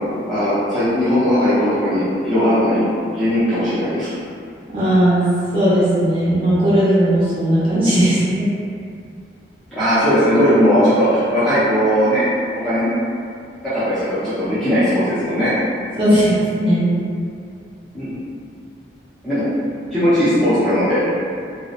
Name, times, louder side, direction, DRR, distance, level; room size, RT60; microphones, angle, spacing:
voice 1, 0.3-2.8 3.1-4.1 9.7-12.3 12.5-12.9 13.6-15.5 17.9-18.2 19.2-19.4 19.9-21.0, equal, ahead, -16 dB, 0.5 m, -18 dB
voice 2, 4.7-5.2 5.5-8.5 16.0-16.9, right 1 dB, 30° right, -12 dB, 1.0 m, -16 dB
2.6 x 2.0 x 2.4 m, 2.3 s
head